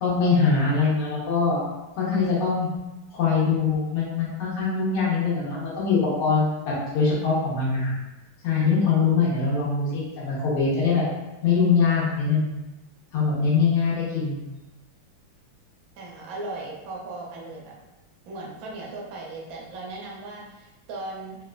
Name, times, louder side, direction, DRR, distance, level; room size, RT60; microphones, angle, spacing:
voice 1, 0.0-1.6 2.0-2.7 3.1-7.9 8.4-11.0 11.4-12.5 13.1-14.4, left 5 dB, 80° left, -7 dB, 1.7 m, -23 dB
voice 2, 16.0-17.7 18.3-21.4, right 2 dB, 80° right, -3 dB, 0.8 m, -37 dB
4.1 x 2.1 x 2.3 m, 1.0 s
omnidirectional pair, 2.4 m